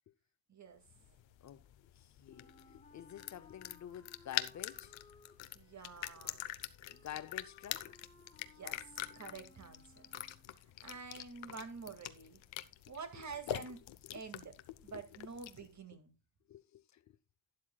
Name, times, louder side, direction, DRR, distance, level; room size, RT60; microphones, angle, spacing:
voice 1, 0.5-0.8 5.5-6.5 8.4-10.0 10.8-12.4 12.9-13.8 14.1-16.1, right 4 dB, 40° right, 2.2 m, -48 dB
sound 1, 0.9-15.7, left 13 dB, 75° left, 1.0 m, -45 dB
voice 2, 2.0-5.0 6.9-8.0 14.0-14.1 14.9-15.0 16.5-17.2, left 11 dB, 40° left, 0.6 m, -49 dB
Wind instrument woodwind instrument, 2.3-10.6, left 3 dB, 15° left, 2.1 m, -63 dB
12.0 x 10.5 x 2.3 m
cardioid pair, 140°, 45 cm